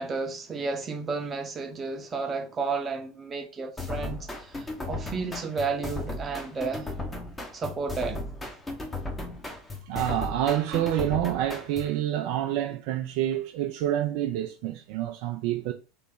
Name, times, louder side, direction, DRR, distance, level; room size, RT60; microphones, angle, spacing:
voice 1, 0.0-6.9 7.5-8.2, right 4 dB, 20° right, 0.7 m, -32 dB
sound 1, 3.8-12.0, left 2 dB, 15° left, 0.8 m, -36 dB
voice 2, 9.9-15.7, right 12 dB, 50° right, 0.3 m, -28 dB
3.3 x 2.9 x 3.6 m
figure-of-eight pair, 80°, 0 cm